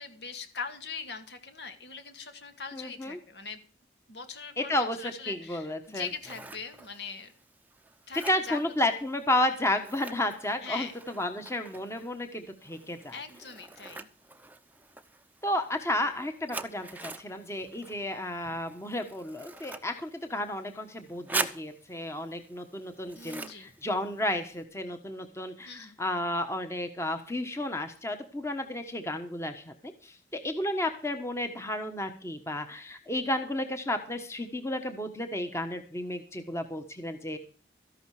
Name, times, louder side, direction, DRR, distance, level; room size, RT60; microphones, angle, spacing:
voice 1, 0.0-3.6 4.1-7.3 8.1-8.6 10.6-10.9 13.1-14.1 23.1-23.7 25.6-25.9, left 5 dB, 70° left, 7 dB, 2.3 m, -41 dB
voice 2, 2.7-3.2 4.6-6.1 8.3-10.9 11.2-13.2 15.4-37.4, left 1 dB, 15° left, 6 dB, 1.3 m, -32 dB
Scissors, 5.8-24.6, right 3 dB, 10° right, 0.8 m, -43 dB
14.0 x 11.5 x 4.9 m, 0.38 s
head